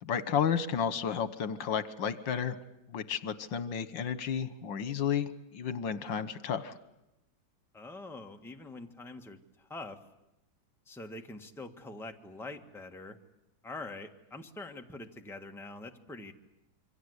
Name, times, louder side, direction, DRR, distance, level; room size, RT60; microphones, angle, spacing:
voice 1, 0.0-2.6 2.9-6.7, left 7 dB, 80° left, 14 dB, 1.9 m, -32 dB
voice 2, 7.7-10.0 10.9-13.2 13.6-16.3, left 2 dB, ahead, 4 dB, 1.4 m, -44 dB
27.5 x 24.5 x 8.1 m, 0.88 s
omnidirectional pair, 2.0 m